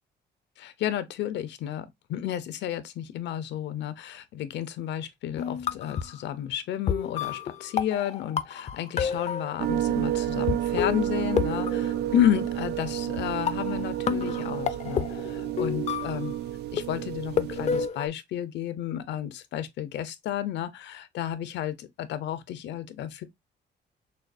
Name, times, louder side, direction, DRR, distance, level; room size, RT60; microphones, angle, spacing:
voice 1, 0.6-16.4 16.7-23.2, left 10 dB, 75° left, 0.7 m, -31 dB
sound 1, 5.4-6.2 6.9-9.8 10.5-10.6 10.8-12.5 13.2-13.3 13.5-16.4 16.8-18.1, left 8 dB, 40° left, 0.4 m, -30 dB
sound 2, 9.6-17.9, right 13 dB, 65° right, 0.4 m, -30 dB
6.3 x 2.3 x 2.5 m
cardioid pair, 145°, 18 cm